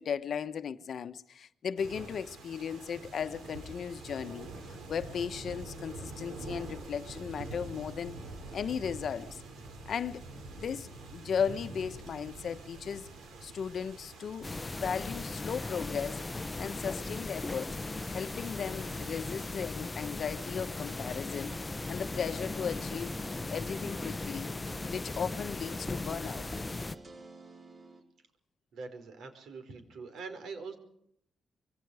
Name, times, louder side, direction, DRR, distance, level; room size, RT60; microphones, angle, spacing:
voice 1, 0.0-8.2 8.5-9.4 9.9-13.1 13.4-17.8 18.1-21.5 21.9-23.1 23.5-24.5 24.9-26.5, left 7 dB, 55° left, 1.1 m, -36 dB
sound 1, 1.8-19.5, right 2 dB, 90° right, 6.1 m, -46 dB
sound 2, 14.4-27.0, left 2 dB, 15° left, 0.8 m, -38 dB
sound 3, 20.4-28.0, right 2 dB, 40° right, 4.9 m, -50 dB
voice 2, 28.7-30.8, right 4 dB, 70° right, 5.0 m, -43 dB
25.5 x 23.0 x 4.9 m
cardioid pair, 140°, 0 cm